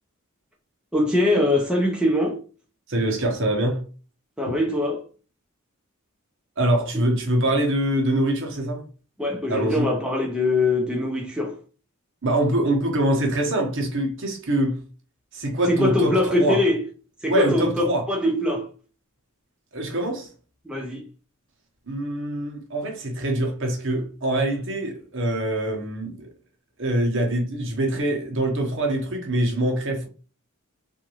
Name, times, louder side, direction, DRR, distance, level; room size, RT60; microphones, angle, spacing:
voice 1, 0.9-2.4 4.4-5.0 9.2-11.6 15.7-16.8 17.2-18.7 20.6-21.0, left 2 dB, 5° right, 0.5 m, -22 dB
voice 2, 2.9-3.8 6.6-8.8 9.5-9.9 12.2-14.8 15.3-16.6 17.3-18.1 19.7-20.3 21.9-26.3 26.8-30.1, right 1 dB, 60° right, 1.0 m, -24 dB
3.6 x 2.6 x 3.0 m
head